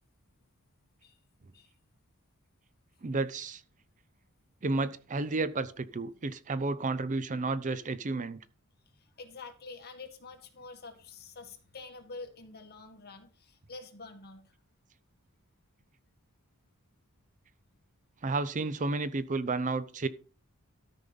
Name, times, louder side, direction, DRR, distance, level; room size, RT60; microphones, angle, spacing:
voice 1, 3.0-3.6 4.6-8.4 18.2-20.1, right 3 dB, 35° right, 0.5 m, -31 dB
voice 2, 8.9-14.5, left 3 dB, 45° left, 1.9 m, -47 dB
13.5 x 5.4 x 5.3 m
head